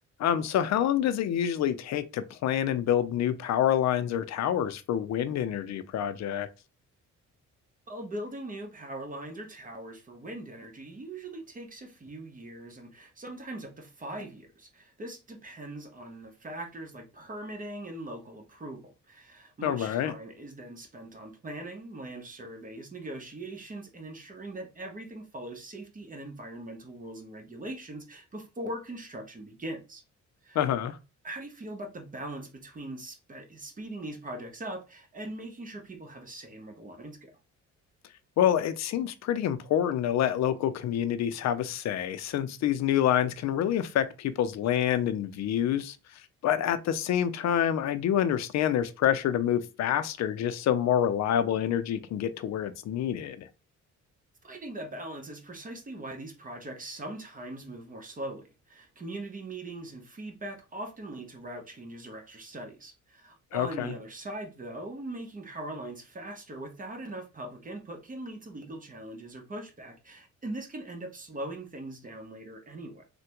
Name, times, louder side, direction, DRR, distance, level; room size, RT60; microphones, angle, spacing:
voice 1, 0.2-6.5 19.6-20.1 30.5-31.0 38.4-46.0 46.4-53.5 63.5-63.9, left 10 dB, 60° left, 0.5 m, -27 dB
voice 2, 7.9-30.0 30.4-30.6 31.2-37.3 54.4-73.1, right 1 dB, 25° right, 0.8 m, -41 dB
3.2 x 2.2 x 2.9 m
cardioid pair, 90°, 30 cm